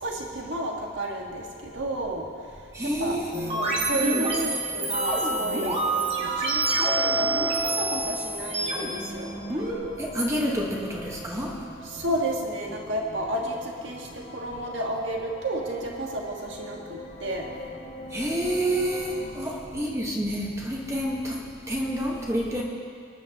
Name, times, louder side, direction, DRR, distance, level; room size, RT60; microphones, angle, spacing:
voice 1, 0.0-2.3 3.0-3.2 3.5-9.3 11.8-17.5, right 1 dB, 65° right, -1 dB, 1.8 m, -32 dB
voice 2, 2.7-3.6 3.9-4.3 10.0-11.6 18.1-22.6, equal, 15° right, -2 dB, 1.5 m, -28 dB
sound 1, 3.3-9.7, right 2 dB, 30° right, 1.9 m, -27 dB
sound 2, 4.7-19.4, left 1 dB, 65° left, 3.8 m, -43 dB
22.0 x 10.5 x 3.0 m, 2.3 s
head